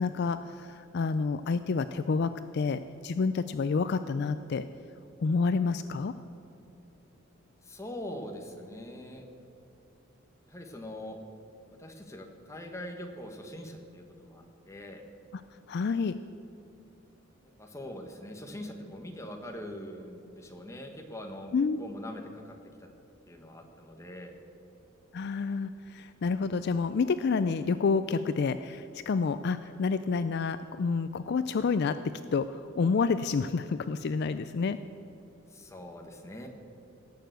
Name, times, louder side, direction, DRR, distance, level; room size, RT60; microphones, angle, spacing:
voice 1, 0.0-4.7 5.2-6.1 15.3-15.4 15.7-16.2 21.5-21.8 25.1-32.0 32.3-34.8, left 4 dB, 50° left, 12 dB, 0.4 m, -29 dB
voice 2, 7.6-9.2 10.5-11.2 11.8-15.0 17.6-22.9 23.3-24.3 35.5-36.5, left 1 dB, 15° left, 3 dB, 1.4 m, -43 dB
17.5 x 6.8 x 8.0 m, 2.8 s
head